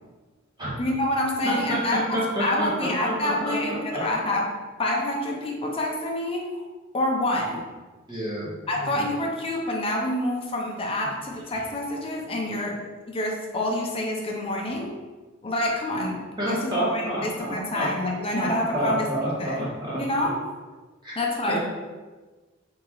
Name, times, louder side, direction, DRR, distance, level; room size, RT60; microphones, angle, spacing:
voice 1, 0.8-4.5 4.8-6.6 6.9-7.6 8.7-12.8 13.1-14.9 15.4-19.1 19.4-19.7 19.9-20.3 21.2-21.6, left 1 dB, 25° left, -1 dB, 0.6 m, -27 dB
voice 2, 1.4-1.8 2.1-4.0 8.1-9.1 16.4-17.9 18.3-20.0 21.0-21.1 21.5-21.6, right 1 dB, 20° right, -7 dB, 1.2 m, -29 dB
3.6 x 2.9 x 3.0 m, 1.3 s
head